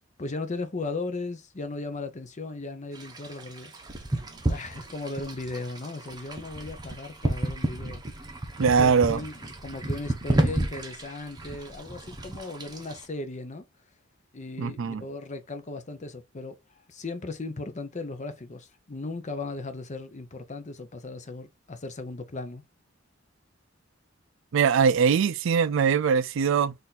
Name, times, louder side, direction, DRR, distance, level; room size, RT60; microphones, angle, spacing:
voice 1, 0.2-4.1 4.5-8.0 8.6-13.6 14.3-22.6, left 3 dB, 35° left, 0.7 m, -37 dB
sound 1, 2.9-13.1, right 1 dB, 20° right, 0.9 m, -32 dB
voice 2, 8.6-9.2 14.6-15.0 24.5-26.7, right 6 dB, 70° right, 0.4 m, -22 dB
4.2 x 2.6 x 3.9 m
head